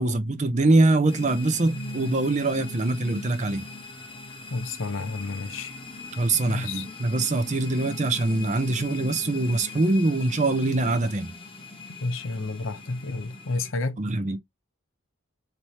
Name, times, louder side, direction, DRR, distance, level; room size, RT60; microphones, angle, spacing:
voice 1, 0.0-3.6 6.2-11.3 14.0-14.4, right 2 dB, 35° right, 0.6 m, -23 dB
sound 1, 1.1-13.7, left 2 dB, 25° left, 1.0 m, -40 dB
voice 2, 4.5-5.7 6.5-6.9 12.0-14.0, left 3 dB, 70° left, 0.8 m, -31 dB
3.2 x 2.9 x 4.1 m
head